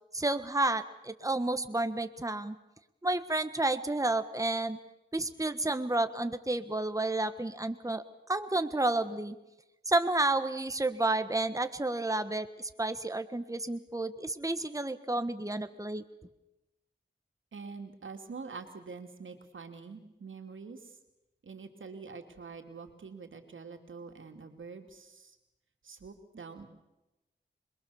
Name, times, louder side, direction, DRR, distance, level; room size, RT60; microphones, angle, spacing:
voice 1, 0.1-2.5 3.0-4.8 5.1-9.3 9.9-16.0, right 2 dB, 15° right, 10 dB, 1.4 m, -31 dB
voice 2, 17.5-21.0 21.4-25.4 25.8-26.7, right 4 dB, 85° right, 5 dB, 2.8 m, -45 dB
26.5 x 22.0 x 7.1 m, 0.97 s
cardioid pair, 50°, 20 cm